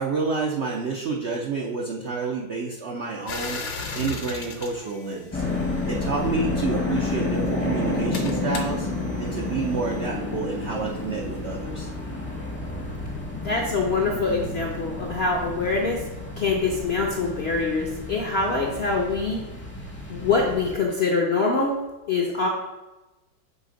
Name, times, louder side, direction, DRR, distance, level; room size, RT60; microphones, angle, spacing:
voice 1, 0.0-3.6 3.9-5.4 5.9-8.9 9.2-11.9, right 4 dB, 90° right, 0 dB, 0.5 m, -29 dB
sound 1, 3.3-5.9 6.8-10.1, left 3 dB, 75° left, 1.5 m, -37 dB
sound 2, 5.3-20.7, left 2 dB, 10° left, 0.5 m, -30 dB
voice 2, 13.3-16.0 16.4-19.4 20.1-21.8 22.1-22.5, left 3 dB, 60° left, -1 dB, 0.6 m, -24 dB
6.6 x 3.4 x 5.0 m, 1.1 s
omnidirectional pair, 2.0 m